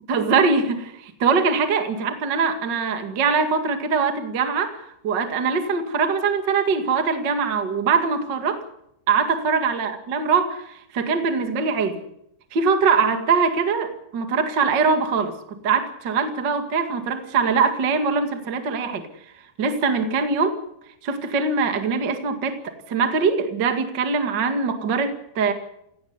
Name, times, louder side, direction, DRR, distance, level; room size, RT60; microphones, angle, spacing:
voice 1, 0.1-8.6 9.1-12.0 12.5-19.0 19.6-20.6 21.0-25.5, right 5 dB, 40° right, 7 dB, 1.7 m, -22 dB
18.0 x 17.0 x 9.6 m, 0.77 s
omnidirectional pair, 4.9 m